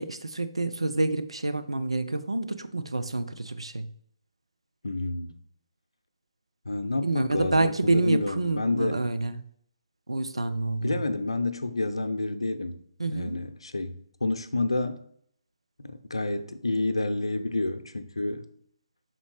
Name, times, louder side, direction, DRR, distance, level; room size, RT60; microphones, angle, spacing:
voice 1, 0.0-3.9 7.0-9.4 10.1-11.0 13.0-13.4, right 2 dB, 80° right, 0.5 m, -28 dB
voice 2, 4.8-5.3 6.7-9.0 10.8-12.8 13.1-15.0 15.8-18.5, left 2 dB, 70° left, 0.6 m, -29 dB
5.7 x 4.0 x 4.9 m
figure-of-eight pair, 140°, 3 cm